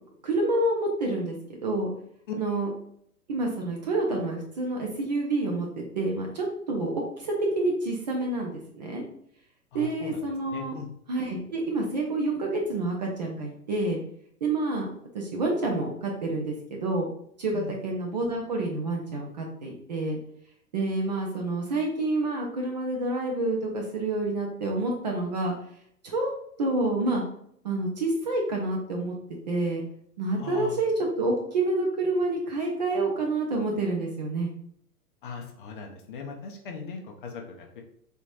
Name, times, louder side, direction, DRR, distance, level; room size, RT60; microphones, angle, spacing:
voice 1, 0.2-1.4 1.6-1.9 2.4-2.7 3.3-9.0 9.7-10.8 11.1-14.0 14.4-14.9 15.1-17.1 17.4-20.2 20.7-25.5 26.0-26.3 26.6-27.2 27.6-29.1 29.5-29.8 30.2-34.5, right 2 dB, 30° right, 0 dB, 0.4 m, -28 dB
voice 2, 9.7-10.9 17.5-17.8 30.4-30.9 35.2-37.8, left 6 dB, 35° left, 2 dB, 0.5 m, -39 dB
3.5 x 2.8 x 2.5 m, 0.67 s
figure-of-eight pair, 105°, 46 cm